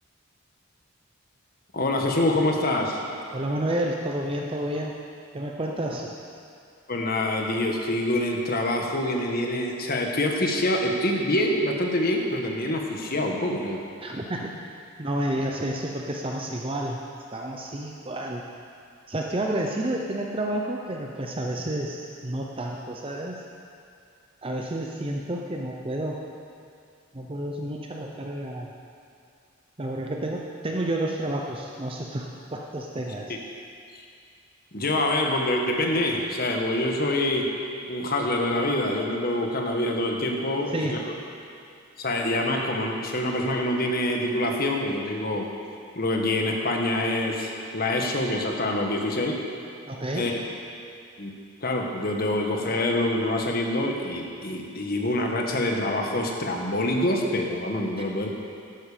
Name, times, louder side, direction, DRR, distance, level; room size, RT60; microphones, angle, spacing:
voice 1, 1.7-3.0 6.9-13.8 34.7-37.5 37.9-41.0 42.0-45.5 45.9-49.4 50.1-50.3 51.2-51.3 51.6-58.3, left 1 dB, 45° left, 1 dB, 1.5 m, -26 dB
voice 2, 3.3-4.9 5.3-6.1 14.0-14.6 15.0-17.0 17.3-18.4 19.1-23.4 24.4-26.2 27.1-28.7 29.8-33.4 40.7-41.0 49.9-50.3 58.0-58.1, right 1 dB, 25° right, 0 dB, 0.7 m, -30 dB
12.5 x 11.5 x 5.1 m, 2.4 s
head